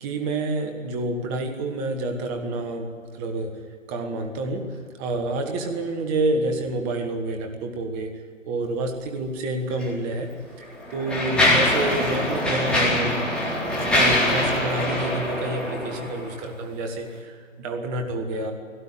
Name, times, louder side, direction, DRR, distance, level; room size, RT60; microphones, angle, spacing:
voice 1, 0.0-3.6 3.9-8.1 8.5-10.3 10.6-13.2 13.8-18.5, right 2 dB, 15° right, 5 dB, 1.3 m, -28 dB
Mechanisms, 9.7-9.9 10.6-16.4, left 1 dB, ahead, 2.9 m, -23 dB
18.0 x 17.0 x 8.9 m, 2.2 s
figure-of-eight pair, 145°, 39 cm